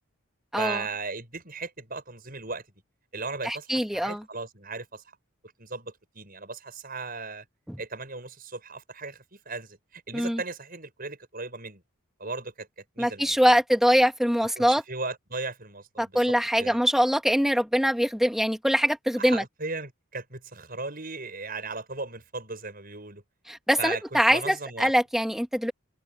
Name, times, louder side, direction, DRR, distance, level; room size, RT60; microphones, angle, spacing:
voice 1, 0.6-2.7 3.1-5.0 5.6-7.4 7.8-11.8 12.2-13.5 14.6-16.8 19.2-23.2 23.8-24.9, right 3 dB, 40° right, 7.8 m, -37 dB
voice 2, 3.4-4.2 7.7-7.8 10.1-10.4 13.0-14.8 16.0-19.4 23.5-25.7, equal, ahead, 1.9 m, -23 dB
head